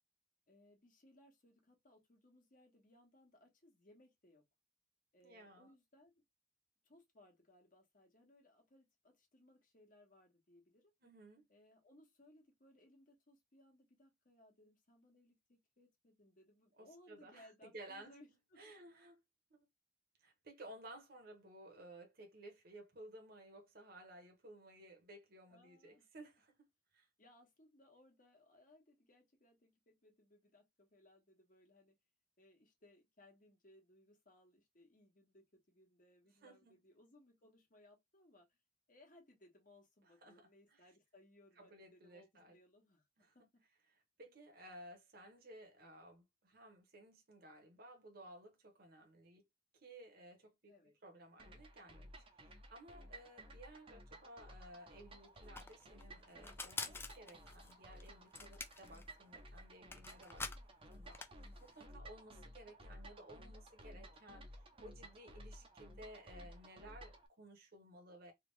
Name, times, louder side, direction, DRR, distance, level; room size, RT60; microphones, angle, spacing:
voice 1, 0.5-4.4 5.1-6.2 6.8-10.9 11.5-18.7 25.5-26.1 27.2-32.0 32.4-38.6 38.9-43.6 50.7-50.9, left 1 dB, 45° left, 1.2 m, -66 dB
voice 2, 5.2-5.7 11.0-11.5 16.8-18.1 18.6-19.2 20.2-26.6 26.9-27.1 36.4-36.8 40.2-40.8 41.6-42.6 43.2-43.4 43.9-49.4 49.7-60.4 60.9-61.2 61.6-68.3, right 1 dB, 55° right, 0.9 m, -57 dB
sound 1, 51.4-67.3, equal, 30° right, 0.6 m, -56 dB
sound 2, 54.9-55.0 55.1-61.8, left 4 dB, 15° left, 0.3 m, -48 dB
3.4 x 2.4 x 3.1 m
head